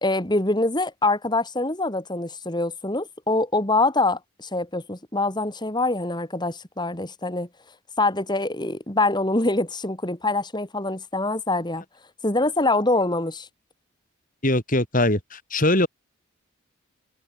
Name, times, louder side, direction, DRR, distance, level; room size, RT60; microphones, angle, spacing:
voice 1, 0.0-7.5 8.0-11.8 12.2-13.5, left 2 dB, 20° left, 2.8 m, -24 dB
voice 2, 14.4-15.9, left 1 dB, 40° left, 6.6 m, -21 dB
head